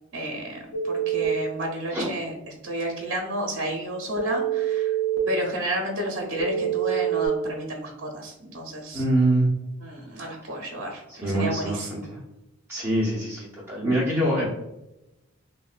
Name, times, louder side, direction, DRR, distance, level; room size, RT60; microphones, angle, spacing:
voice 1, 0.1-0.6 0.8-2.3 2.6-4.9 5.3-9.0 9.8-12.1, right 1 dB, 55° right, 0 dB, 0.6 m, -31 dB
Telephone, 0.7-1.2 4.2-5.2 6.4-7.3, right 9 dB, 65° left, 0.6 m, -26 dB
voice 2, 8.9-9.5 11.1-12.0 12.7-14.5, right 1 dB, 10° right, -7 dB, 0.5 m, -24 dB
3.5 x 2.1 x 2.4 m, 0.94 s
head